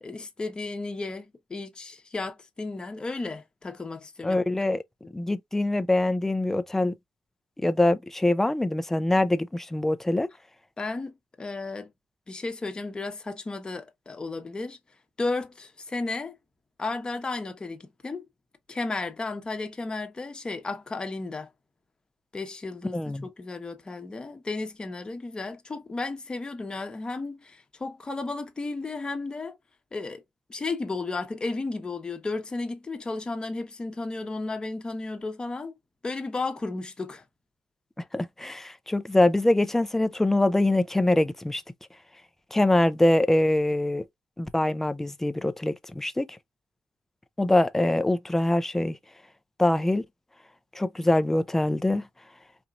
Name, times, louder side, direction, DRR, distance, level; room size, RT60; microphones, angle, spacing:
voice 1, 0.0-4.4 5.0-5.1 10.8-11.9 12.3-14.8 15.2-16.3 16.8-18.2 18.7-21.5 22.3-29.6 29.9-30.2 30.5-35.8 36.0-37.2, left 3 dB, 25° left, 1.0 m, -33 dB
voice 2, 4.2-4.8 5.1-6.9 7.6-10.3 22.9-23.3 38.1-41.6 42.5-44.0 44.4-46.4 47.4-49.0 49.6-50.0 50.7-52.0, left 1 dB, 10° left, 0.5 m, -24 dB
4.3 x 2.8 x 2.4 m
cardioid pair, 110°, 3 cm